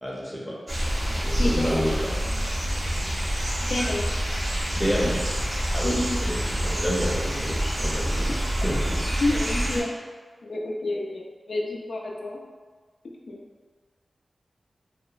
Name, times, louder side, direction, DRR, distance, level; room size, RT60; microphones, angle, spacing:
voice 1, 0.0-0.6 1.1-2.1 4.7-5.2 5.7-9.2, equal, ahead, -5 dB, 0.6 m, -30 dB
sound 1, 0.7-9.8, equal, 50° right, 0.6 m, -27 dB
voice 2, 1.4-1.9 3.7-4.1 5.8-6.2 8.3-8.4 9.2-9.9 10.4-12.4 13.3-13.4, left 2 dB, 80° left, -1 dB, 0.3 m, -29 dB
2.8 x 2.1 x 2.4 m, 1.5 s
wide cardioid pair, 60°, 0 cm